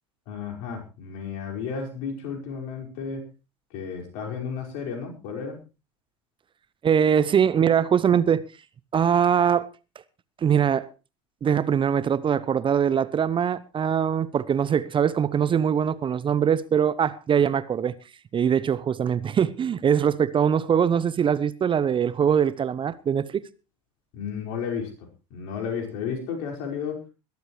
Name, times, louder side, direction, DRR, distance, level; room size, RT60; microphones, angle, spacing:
voice 1, 0.3-3.3 3.7-5.6 24.1-24.9 25.3-27.0, left 6 dB, 60° left, 5.3 m, -32 dB
voice 2, 6.8-8.4 8.9-9.7 10.4-10.9 11.4-17.9 18.3-23.4, right 8 dB, 30° right, 0.8 m, -22 dB
21.5 x 13.0 x 3.2 m
hypercardioid pair, 75°, 17 cm